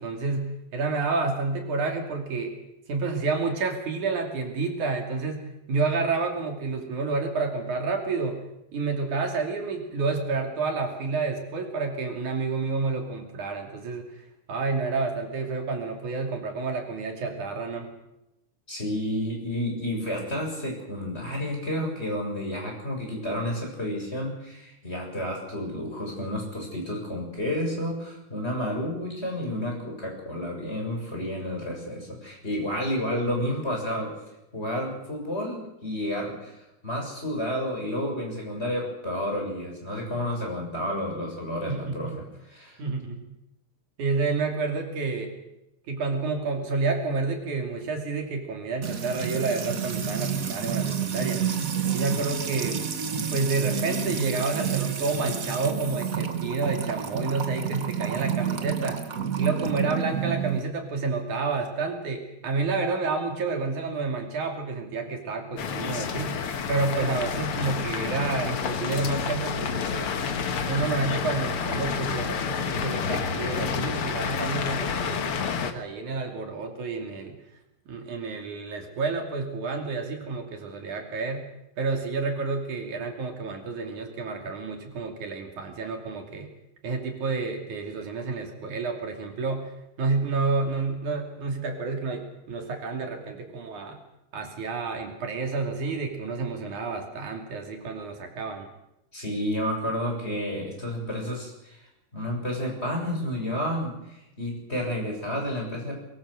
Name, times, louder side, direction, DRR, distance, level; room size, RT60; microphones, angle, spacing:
voice 1, 0.0-2.5 2.9-8.4 8.7-14.0 14.5-17.9 41.7-42.2 42.8-43.2 44.0-45.4 45.9-51.4 51.9-52.8 53.3-59.0 59.4-66.3 66.7-70.1 70.7-75.3 75.6-77.4 77.9-81.4 81.8-86.5 86.8-89.7 90.0-94.0 94.3-98.7, right 4 dB, 75° right, 3 dB, 4.2 m, -29 dB
voice 2, 18.7-34.1 34.5-42.8 99.1-101.8 102.1-106.0, equal, 20° left, 0 dB, 7.3 m, -31 dB
Music / Water tap faucet / Trickle dribble, 48.8-60.6, right 7 dB, 45° right, 1.1 m, -29 dB
sound 1, 65.6-75.7, left 6 dB, 50° left, 2.1 m, -29 dB
23.0 x 23.0 x 6.5 m, 0.88 s
omnidirectional pair, 3.5 m